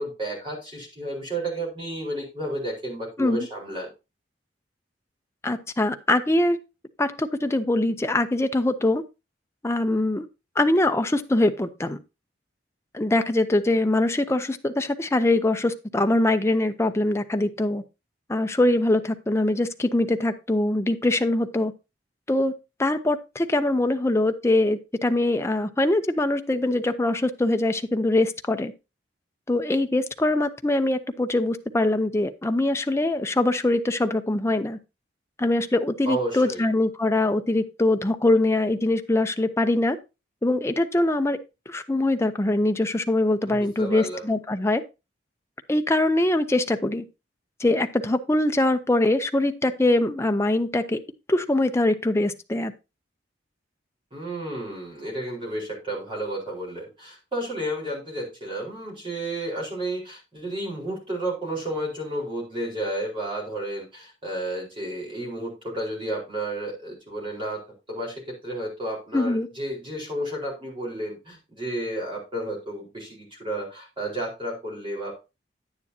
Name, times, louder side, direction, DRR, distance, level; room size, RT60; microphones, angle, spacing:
voice 1, 0.0-3.9 36.1-36.7 43.5-44.2 54.1-67.6 67.9-75.1, right 1 dB, 30° right, -2 dB, 4.4 m, -32 dB
voice 2, 5.4-6.6 7.0-9.0 9.6-10.3 10.6-12.0 12.9-17.8 18.3-21.7 22.3-22.5 22.8-28.7 29.5-34.8 35.4-40.0 40.4-41.4 41.7-44.8 45.7-47.0 47.6-51.0 51.3-52.7 69.1-69.5, left 2 dB, 15° left, 7 dB, 0.6 m, -23 dB
9.6 x 9.5 x 2.8 m, 0.27 s
head